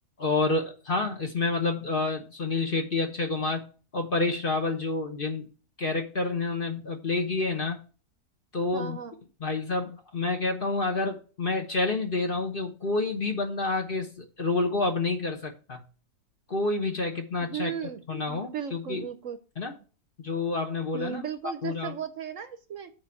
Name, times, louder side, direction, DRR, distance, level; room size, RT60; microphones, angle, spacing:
voice 1, 0.2-3.7 3.9-5.5 5.8-7.8 8.5-9.0 9.4-15.8 16.5-17.7 18.1-19.1 19.6-19.7 20.2-21.2 21.6-21.9, left 3 dB, 40° left, 4 dB, 1.1 m, -28 dB
voice 2, 8.7-9.2 17.4-19.4 20.9-22.9, right 8 dB, 60° right, 10 dB, 1.0 m, -36 dB
7.7 x 4.6 x 6.9 m, 0.36 s
omnidirectional pair, 1.7 m